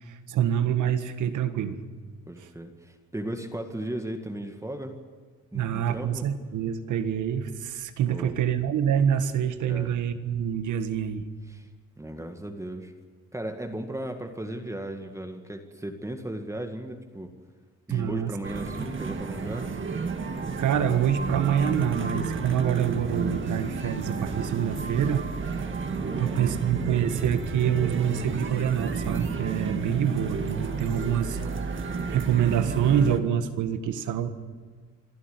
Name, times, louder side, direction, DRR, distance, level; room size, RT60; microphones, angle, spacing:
voice 1, 0.1-1.8 2.4-2.5 5.5-11.2 17.9-18.3 20.6-25.3 26.2-31.4 31.8-34.3, right 9 dB, 80° right, 10 dB, 1.6 m, -26 dB
voice 2, 2.3-5.0 5.5-6.3 8.1-8.3 9.7-9.9 11.5-11.7 12.0-12.9 13.3-17.3 17.9-19.7 26.0-26.4, right 1 dB, 10° right, 4 dB, 1.9 m, -36 dB
sound 1, 18.4-33.2, right 4 dB, 40° right, 2.1 m, -31 dB
27.0 x 11.0 x 9.6 m, 1.5 s
cardioid pair, 90°, 30 cm